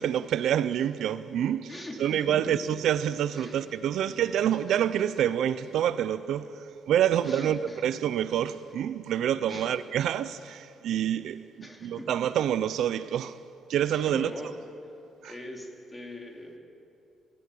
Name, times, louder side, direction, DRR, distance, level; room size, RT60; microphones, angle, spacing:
voice 1, 0.0-1.7 2.0-13.4 13.7-14.3 15.2-15.3, right 10 dB, 75° right, 0.7 m, -27 dB
voice 2, 1.7-2.6 3.3-3.6 3.9-4.2 5.7-5.8 7.2-7.9 9.5-9.7 11.6-12.1 13.9-14.6 15.2-16.6, left 1 dB, 20° left, 4.5 m, -42 dB
26.0 x 16.5 x 8.7 m
cardioid pair, 90°, 0 cm